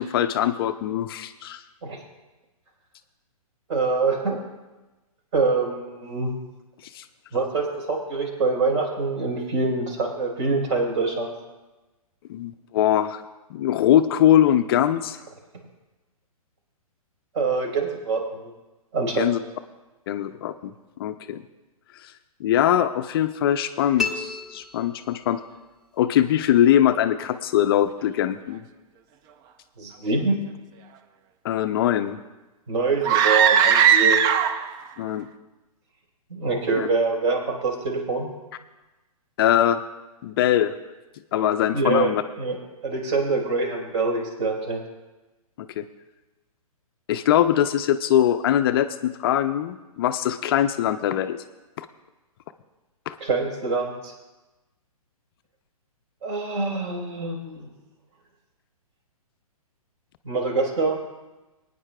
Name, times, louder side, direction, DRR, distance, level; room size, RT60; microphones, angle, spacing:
voice 1, 0.0-1.6 6.9-7.0 12.3-13.2 13.5-15.2 19.2-19.4 20.1-20.7 21.0-21.4 22.0-22.1 22.4-25.4 26.0-28.6 31.4-32.2 33.7-33.8 35.0-35.3 36.8-36.9 39.4-39.8 40.2-40.7 41.3-42.2 45.6-45.9 47.1-51.4 51.8-51.9 53.1-53.2, left 11 dB, 40° left, 10 dB, 0.5 m, -22 dB
voice 2, 3.7-4.4 5.3-6.3 7.3-11.3 17.3-18.5 18.9-19.4 29.8-30.4 32.7-34.2 36.3-38.3 41.7-42.1 42.4-42.6 42.8-44.8 53.2-54.1 56.2-57.7 60.2-61.0, right 3 dB, 50° right, 1 dB, 4.1 m, -25 dB
sound 1, 24.0-25.5, left 5 dB, ahead, 0.9 m, -32 dB
sound 2, 33.0-34.8, right 8 dB, 20° right, 0.4 m, -18 dB
24.0 x 9.8 x 2.2 m, 1.1 s
hypercardioid pair, 130°, 19 cm